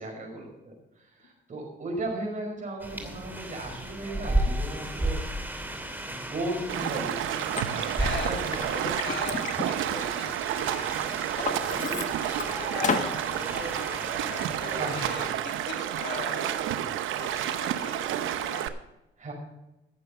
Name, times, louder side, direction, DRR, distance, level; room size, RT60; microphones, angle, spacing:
voice 1, 0.0-5.5 6.0-7.3 8.1-8.7 14.7-15.2 19.2-19.3, right 2 dB, 40° right, 1 dB, 5.5 m, -36 dB
sound 1, 2.8-15.1, right 1 dB, 10° right, 2.6 m, -34 dB
Stream, 6.7-18.7, right 11 dB, 85° right, 0.8 m, -30 dB
Liquid, 7.6-7.7 8.2-10.6 11.0-12.5 12.8-13.1, left 4 dB, 40° left, 1.5 m, -32 dB
voice 2, 7.7-12.0 12.5-16.6 17.2-18.7, left 5 dB, 65° left, 0 dB, 2.9 m, -41 dB
15.0 x 6.9 x 5.7 m, 0.93 s
cardioid pair, 90°, 20 cm